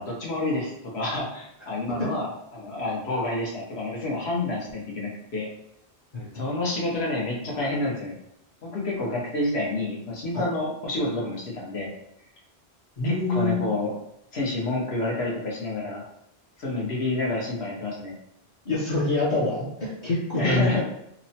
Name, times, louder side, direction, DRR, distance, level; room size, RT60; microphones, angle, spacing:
voice 1, 0.0-2.3 2.5-5.5 6.3-8.2 8.6-11.9 13.0-13.9 14.3-16.0 16.6-18.2 20.3-20.8, left 2 dB, 80° left, -3 dB, 1.1 m, -29 dB
voice 2, 13.0-13.6 18.7-20.8, left 2 dB, 50° left, -7 dB, 0.6 m, -25 dB
2.9 x 2.0 x 2.7 m, 0.77 s
omnidirectional pair, 1.1 m